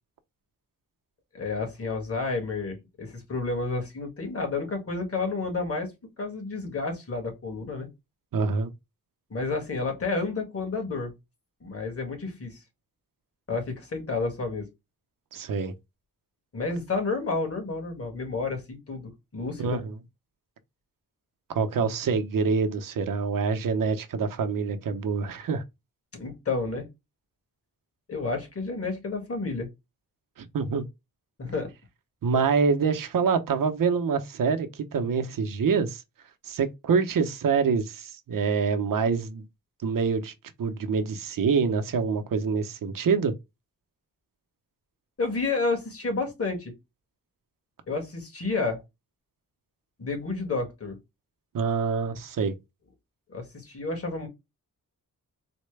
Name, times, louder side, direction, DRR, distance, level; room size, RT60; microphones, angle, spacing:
voice 1, 1.3-5.9 6.2-7.9 9.3-11.1 11.6-12.6 13.5-14.7 16.5-19.8 26.1-26.9 28.1-29.7 31.4-31.7 45.2-46.7 47.9-48.8 50.0-51.0 53.3-54.3, left 3 dB, 40° left, 1.7 m, -30 dB
voice 2, 8.3-8.7 15.3-15.7 19.6-20.0 21.5-25.6 30.4-30.9 32.2-36.0 36.4-39.4 39.8-40.3 40.6-43.3 51.5-52.5, right 5 dB, 70° right, 0.7 m, -26 dB
4.3 x 2.1 x 3.1 m
wide cardioid pair, 110°, 34 cm